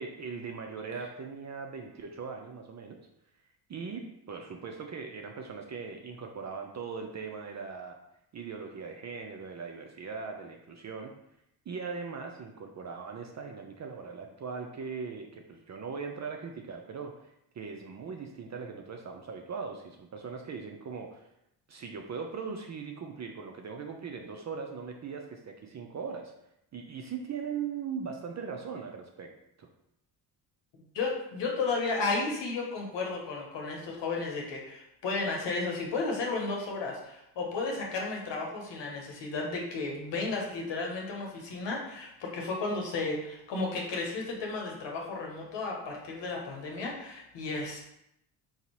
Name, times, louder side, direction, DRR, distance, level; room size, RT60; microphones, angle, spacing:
voice 1, 0.0-3.0 3.7-8.0 8.3-11.1 11.7-21.3 21.7-26.3 26.7-29.3 29.6-29.7, right 5 dB, 35° right, 3 dB, 0.5 m, -40 dB
voice 2, 30.9-47.8, left 3 dB, 65° left, 0 dB, 1.0 m, -33 dB
3.9 x 2.6 x 3.0 m, 0.80 s
supercardioid pair, 60°, 47 cm